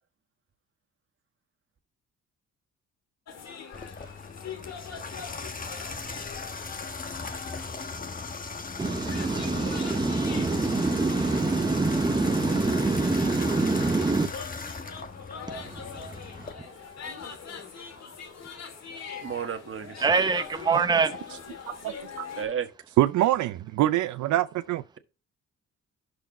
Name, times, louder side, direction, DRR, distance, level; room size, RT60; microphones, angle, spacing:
sound 1, 3.3-22.4, left 6 dB, 60° left, 2.1 m, -43 dB
Water tap faucet / Bathtub (filling or washing), 3.7-16.5, left 4 dB, 30° left, 1.3 m, -38 dB
voice 1, 8.8-14.3 20.0-21.1, right 3 dB, 15° right, 0.8 m, -25 dB
voice 2, 19.2-20.1 22.4-22.7, right 8 dB, 45° right, 1.5 m, -32 dB
voice 3, 21.7-22.3 23.0-24.8, right 14 dB, 75° right, 0.5 m, -25 dB
12.0 x 4.7 x 4.1 m
cardioid pair, 90°, 30 cm